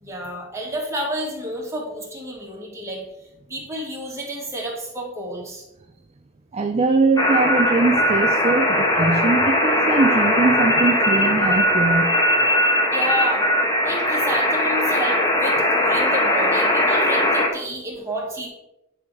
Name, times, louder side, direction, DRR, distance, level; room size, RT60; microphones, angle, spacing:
voice 1, 0.0-3.0 3.5-5.6 12.9-13.5 13.8-18.5, right 1 dB, 15° right, -2 dB, 2.4 m, -30 dB
voice 2, 6.5-12.1, right 3 dB, 30° right, 7 dB, 0.4 m, -21 dB
sound 1, 7.2-17.5, left 1 dB, 15° left, 1.4 m, -19 dB
10.0 x 3.9 x 6.0 m, 0.89 s
head